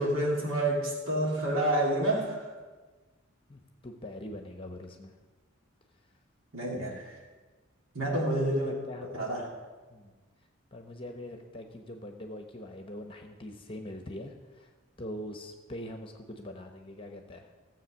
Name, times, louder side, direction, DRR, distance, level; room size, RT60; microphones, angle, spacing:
voice 1, 0.0-2.5 6.5-7.2 7.9-8.7 9.1-9.5, right 1 dB, 75° right, -3 dB, 2.7 m, -28 dB
voice 2, 3.5-5.1 8.4-9.3 9.9-10.1 10.7-14.7 15.0-17.6, left 1 dB, 25° left, 4 dB, 0.9 m, -43 dB
15.0 x 7.6 x 6.4 m, 1.3 s
head